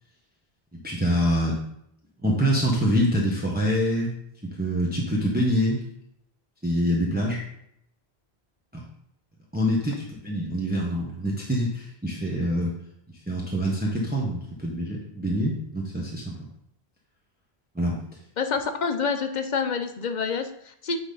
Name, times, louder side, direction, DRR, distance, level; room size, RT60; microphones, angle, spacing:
voice 1, 0.7-1.6 2.2-4.1 4.4-5.8 6.6-7.4 8.7-8.8 9.5-12.7 13.1-16.4 17.7-18.0, equal, 10° right, -3 dB, 0.9 m, -25 dB
voice 2, 18.4-21.0, left 5 dB, 50° left, 7 dB, 0.7 m, -27 dB
8.8 x 4.0 x 3.8 m, 0.73 s
omnidirectional pair, 1.1 m